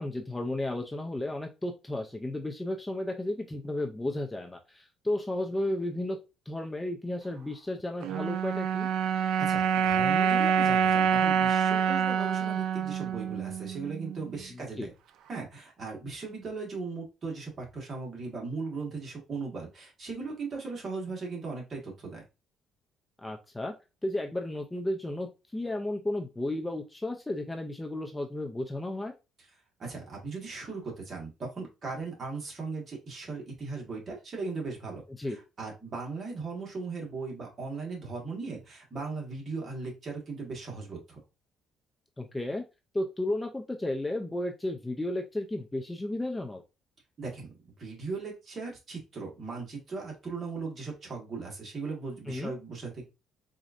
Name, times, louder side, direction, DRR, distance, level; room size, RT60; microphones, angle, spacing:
voice 1, 0.0-6.2 6.5-8.9 14.5-14.9 23.2-23.7 24.0-29.1 35.2-35.4 42.2-42.6 42.9-46.6 52.3-52.5, left 1 dB, 10° left, 3 dB, 0.4 m, -33 dB
sound 1, 8.0-14.4, right 7 dB, 70° right, 0.3 m, -26 dB
voice 2, 9.4-14.9 15.3-22.2 29.8-41.2 47.2-53.1, right 4 dB, 40° right, -1 dB, 1.4 m, -38 dB
4.2 x 2.5 x 2.4 m, 0.27 s
cardioid pair, 115°, 0 cm